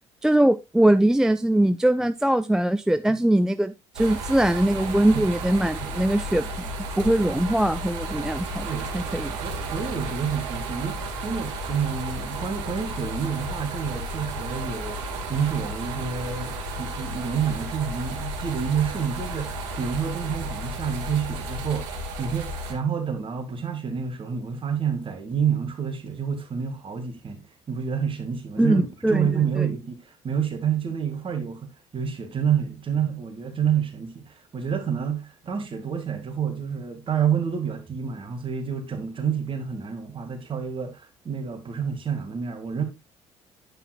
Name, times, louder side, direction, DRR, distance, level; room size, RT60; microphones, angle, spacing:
voice 1, 0.2-6.5 7.0-8.7 8.9-9.3 28.6-29.7, right 1 dB, 5° right, 0.4 m, -21 dB
sound 1, 3.9-22.7, right 2 dB, 65° right, 1.9 m, -33 dB
voice 2, 8.6-9.1 9.4-15.0 15.3-42.8, right 7 dB, 35° right, 2.2 m, -28 dB
9.8 x 8.4 x 2.4 m
figure-of-eight pair, 50°, 15 cm